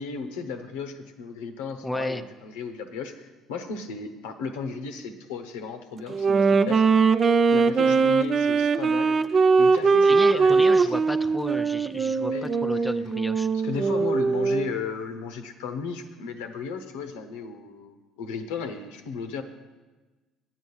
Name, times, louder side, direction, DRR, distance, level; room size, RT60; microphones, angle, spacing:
voice 1, 0.0-7.2 7.5-10.9 12.3-12.5 12.7-12.8 13.6-19.4, left 5 dB, 85° left, 7 dB, 0.9 m, -35 dB
voice 2, 1.8-2.2 10.0-13.5, left 1 dB, 5° left, 8 dB, 0.5 m, -33 dB
Wind instrument woodwind instrument, 6.1-14.8, right 4 dB, 40° right, 0.5 m, -21 dB
8.8 x 8.2 x 7.1 m, 1.2 s
supercardioid pair, 75°, 0 cm